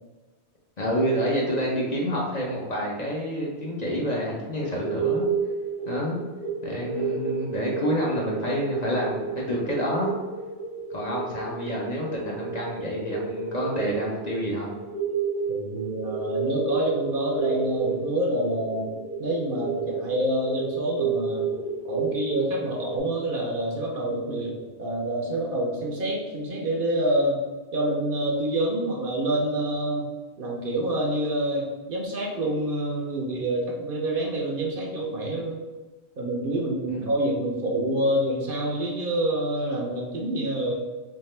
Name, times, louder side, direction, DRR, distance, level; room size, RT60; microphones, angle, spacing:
voice 1, 0.8-5.2 5.9-6.2 6.6-10.1 10.9-14.7 36.9-37.1, equal, 45° left, -3 dB, 0.7 m, -28 dB
sound 1, 4.8-23.0, right 5 dB, 60° left, 1.4 m, -31 dB
voice 2, 15.5-21.5 21.8-27.4 27.7-30.1 30.4-35.6 36.2-40.7, right 1 dB, 60° right, -1 dB, 0.8 m, -27 dB
3.6 x 3.2 x 3.2 m, 1.2 s
omnidirectional pair, 1.1 m